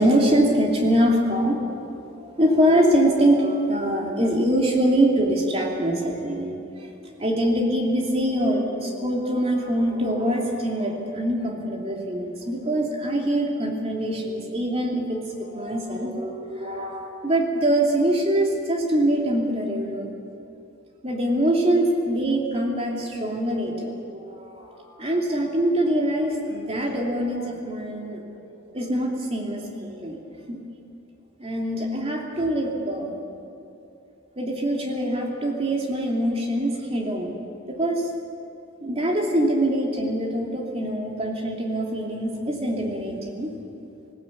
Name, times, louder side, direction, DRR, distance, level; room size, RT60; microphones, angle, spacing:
voice 1, 0.0-1.6 2.2-6.5 6.8-20.1 21.0-28.2 28.7-30.2 30.5-30.6 31.4-33.2 34.4-38.0 38.8-43.5, right 1 dB, 30° right, -1 dB, 2.8 m, -24 dB
20.0 x 17.5 x 8.3 m, 2.7 s
head